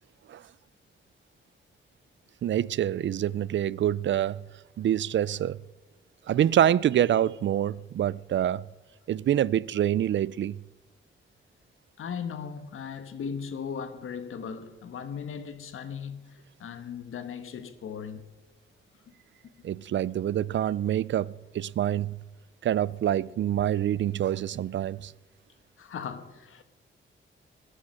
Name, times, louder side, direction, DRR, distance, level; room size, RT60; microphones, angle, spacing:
voice 1, 2.4-4.4 4.8-5.6 6.3-8.6 9.1-10.6 19.6-22.2 22.6-25.1, right 11 dB, 65° right, 0.4 m, -26 dB
voice 2, 12.0-18.2 25.8-26.6, left 6 dB, 90° left, 1.3 m, -37 dB
20.0 x 10.0 x 6.5 m
wide cardioid pair, 130°, 21 cm